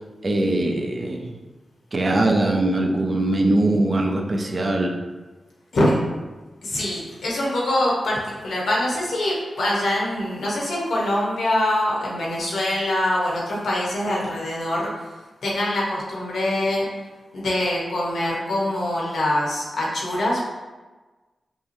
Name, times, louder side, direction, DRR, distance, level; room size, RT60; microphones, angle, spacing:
voice 1, 0.2-1.4 1.9-5.0, right 2 dB, 35° right, 2 dB, 0.4 m, -21 dB
voice 2, 6.6-14.9 15.4-16.9 17.3-20.4, left 1 dB, 90° left, -4 dB, 1.1 m, -24 dB
5.4 x 2.0 x 3.0 m, 1.2 s
wide cardioid pair, 150°, 0 cm